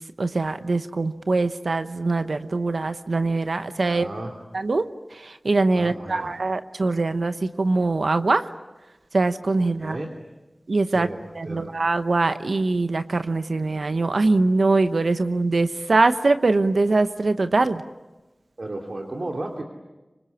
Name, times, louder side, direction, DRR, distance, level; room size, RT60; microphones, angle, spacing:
voice 1, 0.2-4.1 4.5-4.8 5.1-8.5 9.1-10.0 10.7-11.1 11.3-17.8, right 3 dB, 90° right, 10 dB, 0.9 m, -22 dB
voice 2, 3.8-4.3 5.7-6.3 9.6-10.1 10.9-11.7 18.6-19.6, right 2 dB, 70° right, 1 dB, 2.8 m, -34 dB
26.0 x 25.0 x 8.5 m, 1.1 s
wide cardioid pair, 55°, 0 cm